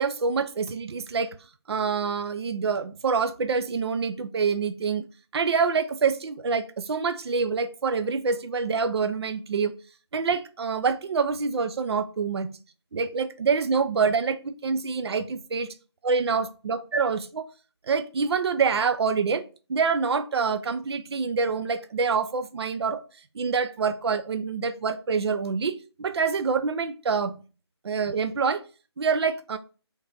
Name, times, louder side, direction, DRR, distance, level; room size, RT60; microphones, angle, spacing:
voice 1, 0.0-1.3 1.7-5.1 5.3-9.7 10.1-12.5 12.9-15.7 16.0-17.5 17.9-19.4 19.7-23.0 23.4-27.4 27.8-28.6 29.0-29.6, right 5 dB, 65° right, 0.4 m, -26 dB
3.5 x 3.2 x 4.0 m
figure-of-eight pair, 165°, 15 cm